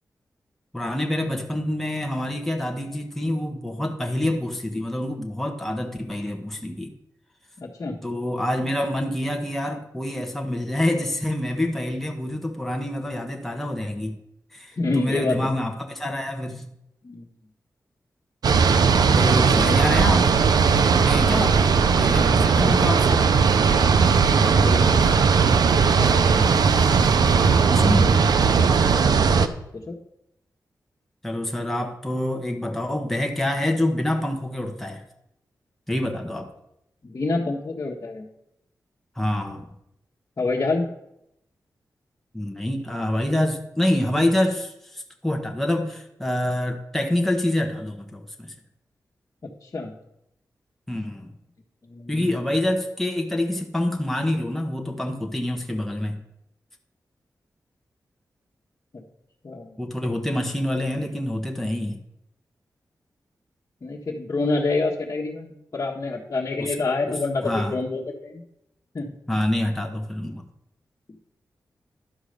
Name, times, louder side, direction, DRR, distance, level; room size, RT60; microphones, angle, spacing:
voice 1, 0.7-6.9 8.0-14.2 14.5-16.6 19.1-20.3 21.0-21.6 22.0-23.3 27.5-28.2 31.2-35.0 35.9-36.5 39.2-39.7 42.3-48.5 50.9-51.3 52.1-56.2 59.8-62.0 66.6-66.7 67.1-67.2 67.4-67.7 69.3-70.5, left 1 dB, 5° left, 2 dB, 1.3 m, -26 dB
voice 2, 7.6-8.0 14.8-15.4 17.0-17.3 19.4-19.8 22.2-22.8 24.3-25.1 26.0-26.6 29.0-30.0 37.0-38.3 40.4-40.9 49.4-49.9 51.8-52.3 58.9-59.0 59.4-59.8 63.8-68.4 68.9-69.1, left 3 dB, 45° left, -5 dB, 1.5 m, -28 dB
sound 1, 18.4-29.5, right 5 dB, 75° right, 0.6 m, -18 dB
11.5 x 5.0 x 6.7 m, 0.80 s
wide cardioid pair, 85°, 7 cm